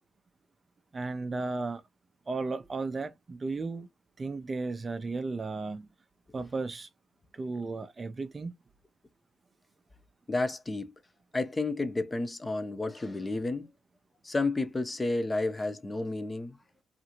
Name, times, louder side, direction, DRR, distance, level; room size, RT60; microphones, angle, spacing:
voice 1, 0.9-1.8 2.3-3.9 4.2-5.9 6.3-6.9 7.3-8.5, right 3 dB, 30° right, 0.4 m, -34 dB
voice 2, 10.3-10.9 11.3-13.7 14.2-16.6, left 2 dB, 20° left, 0.6 m, -31 dB
2.6 x 2.5 x 2.9 m
cardioid pair, 90°, 0 cm